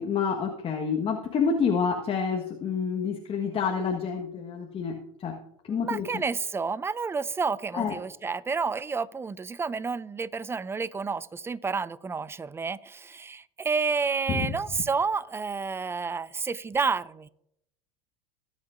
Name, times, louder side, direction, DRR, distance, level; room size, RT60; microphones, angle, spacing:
voice 1, 0.0-5.4 5.7-6.2 7.7-7.9 14.3-14.5, left 6 dB, 30° left, 0 dB, 1.4 m, -28 dB
voice 2, 5.7-17.3, right 5 dB, 15° right, 20 dB, 0.5 m, -30 dB
18.5 x 8.7 x 2.6 m, 0.75 s
hypercardioid pair, 85°, 18 cm